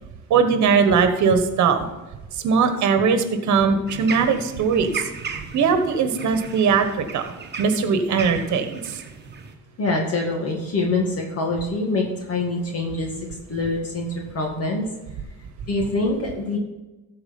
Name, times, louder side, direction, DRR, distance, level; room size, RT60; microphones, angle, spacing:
voice 1, 0.3-1.9 2.4-4.9 5.5-7.2 7.6-9.0, right 5 dB, 55° right, 8 dB, 1.4 m, -20 dB
sound 1, 3.9-9.5, right 5 dB, 30° right, 1.3 m, -36 dB
voice 2, 9.8-14.9 15.7-16.6, left 2 dB, 45° left, 0 dB, 2.0 m, -25 dB
14.0 x 4.8 x 5.4 m, 1.1 s
cardioid pair, 110°, 34 cm